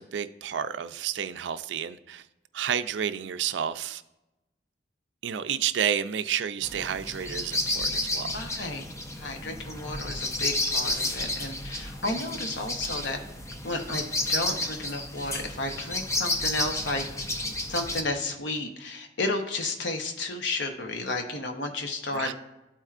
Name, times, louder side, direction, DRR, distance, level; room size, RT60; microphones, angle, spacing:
voice 1, 0.0-2.3 2.5-4.0 5.2-8.4 22.1-22.3, right 8 dB, 90° right, 0.4 m, -30 dB
sound 1, 6.6-18.0, left 1 dB, 15° left, 0.5 m, -31 dB
voice 2, 8.3-8.8 9.2-13.2 13.6-17.0 17.7-22.3, left 2 dB, 90° left, 0.8 m, -32 dB
12.0 x 4.4 x 2.4 m
head